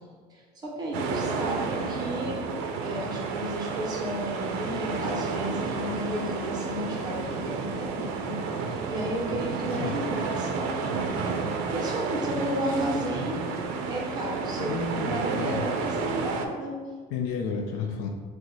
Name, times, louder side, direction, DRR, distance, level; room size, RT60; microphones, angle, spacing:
voice 1, 0.0-2.4 2.8-10.7 11.7-13.4 13.9-16.7, equal, 25° right, -2 dB, 0.6 m, -33 dB
sound 1, 0.9-16.5, right 4 dB, 85° right, 0.5 m, -31 dB
voice 2, 14.6-15.6 17.1-18.1, left 5 dB, 90° left, 3 dB, 0.5 m, -31 dB
4.6 x 2.1 x 3.8 m, 1.5 s
cardioid pair, 175°, 17 cm